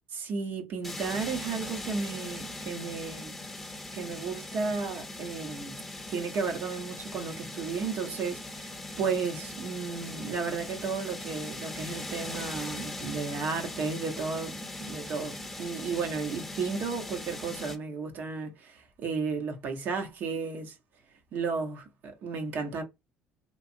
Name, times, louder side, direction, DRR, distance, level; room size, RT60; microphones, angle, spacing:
voice 1, 0.1-3.3 3.9-5.8 6.1-20.8 21.3-22.8, right 5 dB, 60° right, 1.0 m, -33 dB
sound 1, 0.8-17.8, left 2 dB, 5° left, 1.0 m, -40 dB
3.1 x 2.4 x 2.6 m
supercardioid pair, 85°, 4 cm